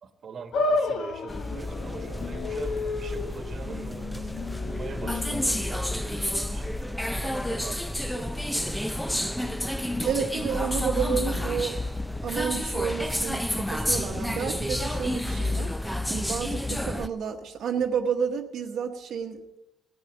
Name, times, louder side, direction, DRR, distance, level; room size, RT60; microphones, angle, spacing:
voice 1, 0.0-6.7 7.1-7.8 8.1-9.5, right 5 dB, 50° right, 8 dB, 1.3 m, -43 dB
sound 1, 0.5-7.0, left 3 dB, 70° left, 1.1 m, -32 dB
sound 2, 1.3-17.1, left 1 dB, 5° left, 0.6 m, -30 dB
voice 2, 10.0-11.8 12.2-15.7 16.1-19.6, right 7 dB, 70° right, 1 dB, 1.1 m, -30 dB
15.0 x 9.7 x 7.1 m, 0.94 s
cardioid pair, 90°, 0 cm